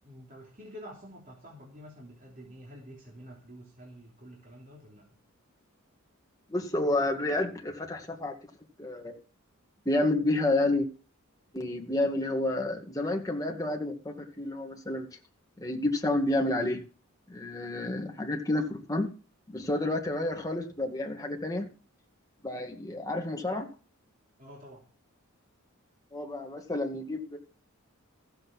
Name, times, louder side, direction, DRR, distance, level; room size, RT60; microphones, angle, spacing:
voice 1, 0.0-5.2 24.4-24.9, equal, 40° right, -3 dB, 3.3 m, -49 dB
voice 2, 6.5-8.4 8.8-9.2 9.9-10.9 11.5-15.1 15.6-16.8 17.3-19.1 19.5-21.7 22.4-23.7 26.1-27.4, left 2 dB, 15° left, 1 dB, 2.0 m, -30 dB
15.0 x 7.9 x 6.1 m, 0.37 s
head